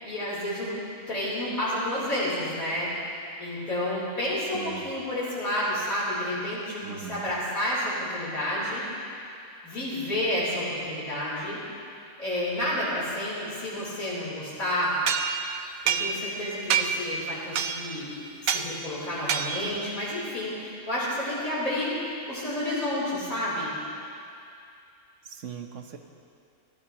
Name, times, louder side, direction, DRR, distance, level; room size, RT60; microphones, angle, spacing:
voice 1, 0.0-8.8 9.6-11.6 12.2-15.0 15.8-23.7, left 1 dB, 80° left, -8 dB, 4.2 m, -30 dB
voice 2, 4.5-4.9 6.8-7.3 25.2-26.0, right 8 dB, 60° right, 5 dB, 1.3 m, -40 dB
sound 1, 15.1-16.4 16.7-17.1 17.6-18.0 18.5-18.7 19.3-19.8, right 8 dB, 80° right, 1.2 m, -27 dB
23.5 x 15.5 x 3.0 m, 2.5 s
omnidirectional pair, 1.5 m